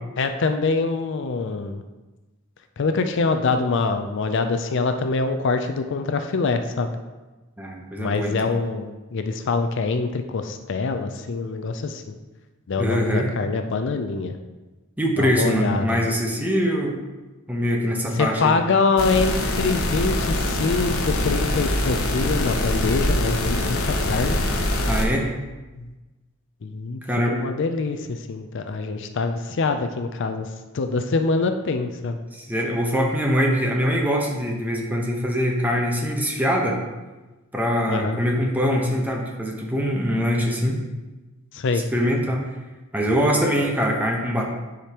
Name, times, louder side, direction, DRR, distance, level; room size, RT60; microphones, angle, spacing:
voice 1, 0.2-1.8 2.8-7.0 8.0-12.0 12.7-14.4 15.2-16.2 18.1-24.4 25.8-25.9 26.6-27.0 27.3-30.5 30.7-32.2 37.9-38.2 41.5-41.8, left 4 dB, 60° left, 8 dB, 0.5 m, -24 dB
voice 2, 7.6-8.5 12.8-13.3 15.0-17.0 17.5-18.6 24.9-25.3 27.1-27.4 32.3-36.8 37.5-40.8 41.9-42.4 42.9-44.5, equal, 10° right, 0 dB, 0.9 m, -23 dB
sound 1, 19.0-25.1, left 1 dB, 90° left, 0.9 m, -24 dB
10.0 x 5.1 x 2.9 m, 1.2 s
head